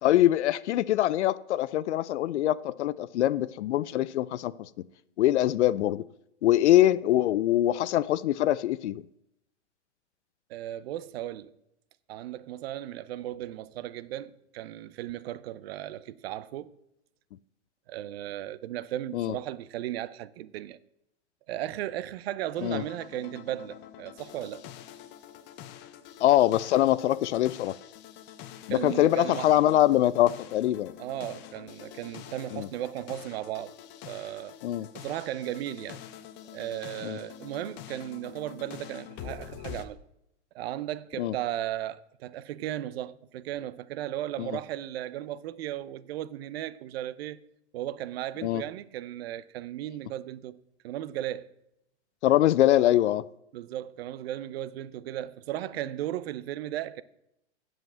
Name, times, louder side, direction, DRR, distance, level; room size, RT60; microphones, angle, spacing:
voice 1, 0.0-4.7 5.2-6.0 6.4-9.0 19.1-19.3 22.6-22.8 26.2-27.8 28.7-30.9 32.5-32.7 34.6-34.9 37.0-37.2 41.2-41.3 44.4-44.5 48.4-48.6 52.2-53.2, left 13 dB, 70° left, 0.5 m, -23 dB
voice 2, 10.5-11.5 12.1-16.7 17.9-20.8 21.5-24.6 28.7-29.5 31.0-33.7 34.1-34.5 34.9-36.0 36.5-40.0 40.5-47.4 47.7-50.6 50.8-51.5 53.5-57.0, right 13 dB, 55° right, 0.7 m, -36 dB
sound 1, 22.6-39.9, left 10 dB, 30° left, 0.8 m, -46 dB
8.0 x 7.5 x 7.4 m
hypercardioid pair, 130°, 36 cm